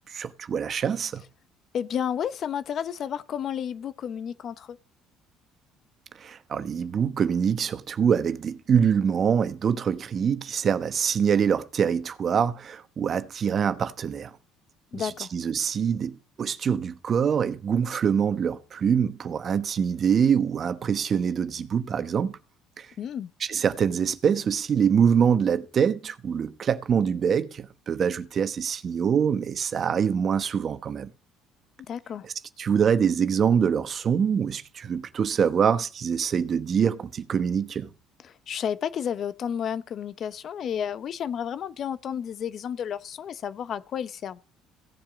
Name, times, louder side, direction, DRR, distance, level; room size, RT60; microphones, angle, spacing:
voice 1, 0.1-1.2 6.2-14.4 14.9-22.3 22.8-22.9 23.4-31.1 32.2-32.3 32.6-37.9, right 7 dB, 45° right, 1.1 m, -24 dB
voice 2, 1.7-4.8 14.9-15.3 23.0-23.3 31.9-32.3 38.2-44.4, left 8 dB, 55° left, 0.9 m, -31 dB
16.5 x 7.4 x 5.2 m
supercardioid pair, 80°, 0 cm